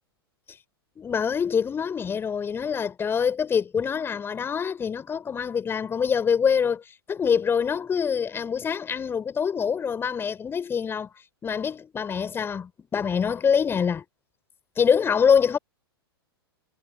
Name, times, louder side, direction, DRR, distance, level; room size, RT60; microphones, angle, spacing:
voice 1, 1.0-6.8 7.1-11.1 11.4-14.0 14.8-15.6, left 7 dB, 15° left, 6.1 m, -25 dB
figure-of-eight pair, 100°, 13 cm